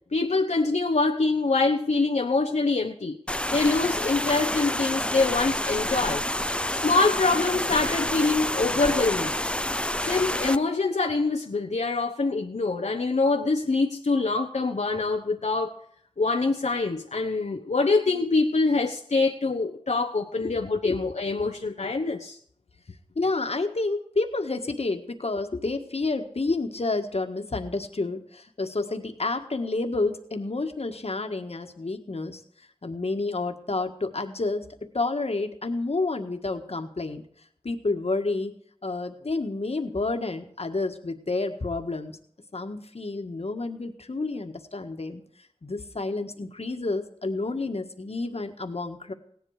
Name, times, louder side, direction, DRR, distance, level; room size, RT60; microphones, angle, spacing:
voice 1, 0.1-3.2 3.5-6.2 6.7-9.3 10.0-15.7 16.2-22.4, left 3 dB, 85° left, 1 dB, 1.1 m, -25 dB
sound 1, 3.3-10.6, left 1 dB, 10° left, 0.6 m, -28 dB
voice 2, 23.1-32.4 32.8-37.2 37.6-38.5 38.8-42.1 42.5-45.2 45.6-49.1, left 3 dB, 65° left, 5 dB, 1.7 m, -29 dB
17.5 x 11.0 x 5.0 m, 0.64 s
wide cardioid pair, 65°, 11 cm